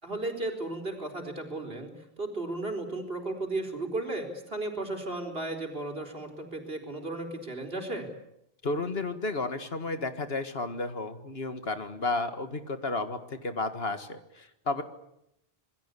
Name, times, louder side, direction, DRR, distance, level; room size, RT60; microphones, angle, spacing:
voice 1, 0.0-8.1, right 2 dB, 65° right, 3 dB, 4.6 m, -35 dB
voice 2, 8.6-14.8, left 3 dB, 75° left, 9 dB, 2.1 m, -32 dB
27.0 x 21.5 x 8.4 m, 0.80 s
omnidirectional pair, 1.0 m